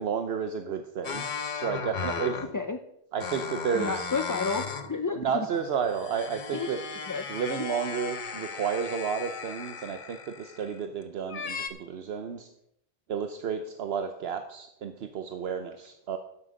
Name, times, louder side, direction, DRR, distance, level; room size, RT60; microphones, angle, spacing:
voice 1, 0.0-2.4 3.1-4.1 5.1-6.9 7.3-12.5 13.1-16.2, right 7 dB, 70° right, 7 dB, 1.0 m, -32 dB
sound 1, 1.0-2.6 3.2-4.9 5.3-10.8 11.3-11.7, left 5 dB, 50° left, 1.0 m, -36 dB
voice 2, 3.7-5.5 6.5-6.7 7.1-7.2, left 4 dB, 30° left, 6 dB, 0.3 m, -31 dB
12.0 x 7.9 x 5.1 m, 0.78 s
omnidirectional pair, 1.1 m